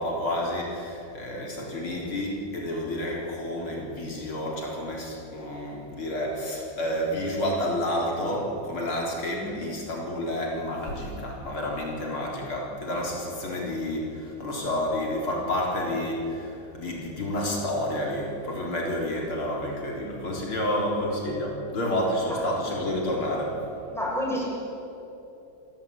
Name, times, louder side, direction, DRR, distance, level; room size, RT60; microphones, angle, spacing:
voice 1, 0.0-23.6, left 1 dB, 85° left, -2 dB, 4.8 m, -30 dB
voice 2, 20.5-20.9 22.3-22.5 23.9-24.5, equal, ahead, -4 dB, 6.8 m, -32 dB
28.5 x 17.0 x 8.8 m, 2.9 s
omnidirectional pair, 2.3 m